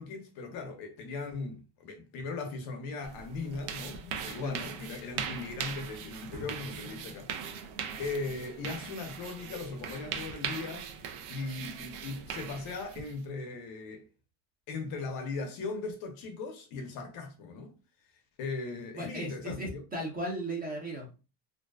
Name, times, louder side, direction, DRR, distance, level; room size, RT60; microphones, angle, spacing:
voice 1, 0.0-7.3 8.0-10.9 11.3-14.1 14.7-17.7 18.4-19.8, left 3 dB, 50° left, 0.6 m, -38 dB
sound 1, 3.0-13.2, right 7 dB, 65° right, 0.6 m, -40 dB
voice 2, 18.9-21.1, right 1 dB, 20° right, 0.7 m, -36 dB
2.6 x 2.1 x 2.2 m
supercardioid pair, 135°, 48 cm